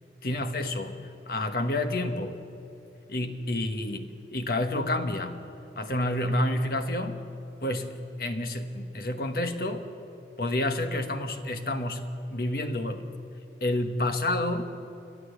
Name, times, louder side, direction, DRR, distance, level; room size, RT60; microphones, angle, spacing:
voice 1, 0.2-1.0 1.3-2.4 3.1-5.4 5.7-7.2 7.6-9.9 10.4-13.1 13.6-14.7, left 1 dB, 55° left, 6 dB, 1.3 m, -29 dB
30.0 x 11.0 x 8.1 m, 2.8 s
head